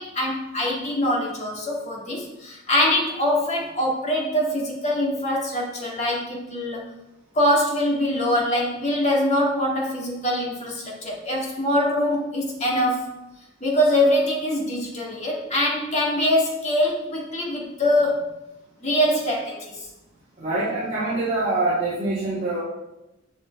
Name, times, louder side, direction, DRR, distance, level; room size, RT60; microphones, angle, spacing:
voice 1, 0.0-6.8 7.3-13.1 13.6-18.3 18.8-19.8, left 1 dB, 35° left, -3 dB, 1.9 m, -23 dB
voice 2, 20.4-22.6, right 2 dB, 35° right, -13 dB, 3.3 m, -24 dB
11.0 x 6.4 x 3.3 m, 0.94 s
head